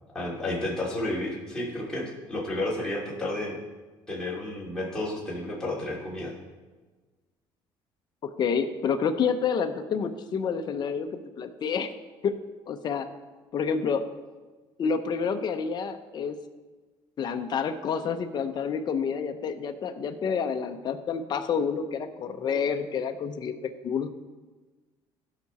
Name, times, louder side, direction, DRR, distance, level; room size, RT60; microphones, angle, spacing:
voice 1, 0.1-3.6 4.1-6.3, left 1 dB, 5° left, -7 dB, 3.0 m, -31 dB
voice 2, 8.2-11.9 12.2-12.3 12.7-13.1 13.5-14.0 14.8-16.4 17.2-24.1, left 6 dB, 45° left, 7 dB, 0.8 m, -29 dB
15.5 x 6.0 x 4.2 m, 1.3 s
cardioid pair, 115°, 10 cm